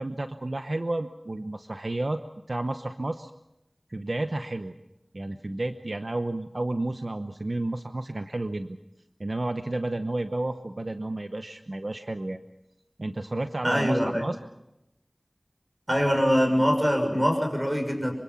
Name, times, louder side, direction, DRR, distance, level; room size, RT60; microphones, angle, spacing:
voice 1, 0.0-2.2 2.5-3.3 3.9-4.7 5.1-8.8 9.2-12.4 13.0-14.4, right 2 dB, 65° right, 7 dB, 0.9 m, -31 dB
voice 2, 13.6-14.2 15.9-18.1, equal, 25° right, 2 dB, 6.8 m, -23 dB
25.5 x 24.5 x 5.8 m, 0.89 s
wide cardioid pair, 45°, 0 cm